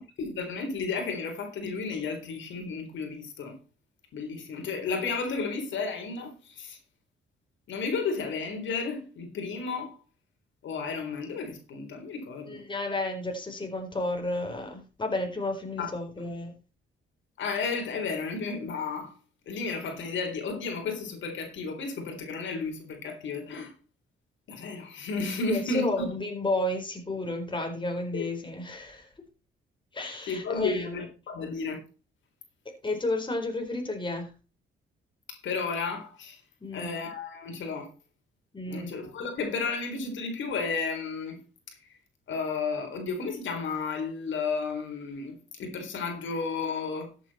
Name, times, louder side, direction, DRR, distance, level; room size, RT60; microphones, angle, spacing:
voice 1, 0.2-3.6 4.1-6.8 7.7-10.0 10.6-12.6 15.8-15.9 16.2-16.3 17.4-19.1 19.5-23.7 24.5-26.1 28.1-28.3 30.0-31.8 35.3-36.4 36.7-37.9 38.7-41.4 42.3-47.1, left 4 dB, 70° left, 4.0 m, -33 dB
voice 2, 12.5-16.6 25.5-29.1 29.9-30.9 32.8-34.3 36.6-36.9 38.5-39.0, left 2 dB, 25° left, 4.2 m, -32 dB
14.0 x 8.2 x 4.3 m
cardioid pair, 90°, 20 cm